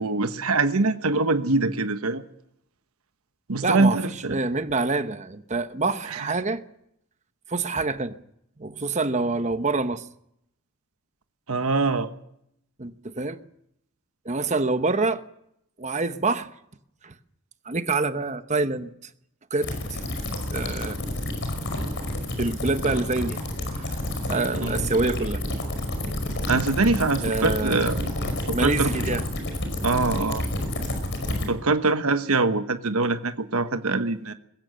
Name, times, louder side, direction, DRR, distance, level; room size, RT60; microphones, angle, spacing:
voice 1, 0.0-2.2 3.5-4.4 6.1-6.3 11.5-12.1 24.6-24.9 26.5-28.1 28.5-28.9 29.8-30.4 31.5-34.3, right 3 dB, 80° right, 9 dB, 1.2 m, -24 dB
voice 2, 3.6-6.6 7.5-8.2 8.6-10.1 12.8-13.4 14.2-15.2 15.8-16.5 17.0-17.2 17.6-19.1 19.5-20.0 20.5-21.1 22.4-23.4 23.7-24.0 24.3-25.4 27.2-27.9 28.5-29.2, right 3 dB, 30° right, 10 dB, 1.0 m, -26 dB
sound 1, 19.6-31.5, left 1 dB, 55° left, 5.2 m, -29 dB
20.5 x 16.0 x 7.7 m, 0.76 s
head